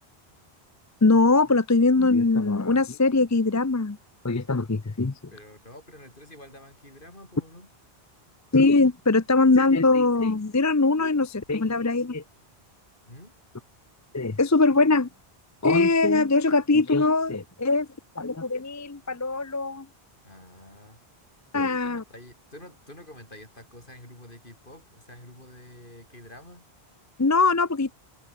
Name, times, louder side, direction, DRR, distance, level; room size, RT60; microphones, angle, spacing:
voice 1, 1.0-4.0 4.2-5.1 8.5-12.2 14.1-15.1 15.6-17.9 18.2-19.9 21.5-22.0 27.2-27.9, left 3 dB, 20° left, 0.5 m, -21 dB
voice 2, 5.3-7.7 13.1-13.3 20.2-21.0 21.6-26.6, left 1 dB, 50° left, 8.0 m, -48 dB
omnidirectional pair, 1.1 m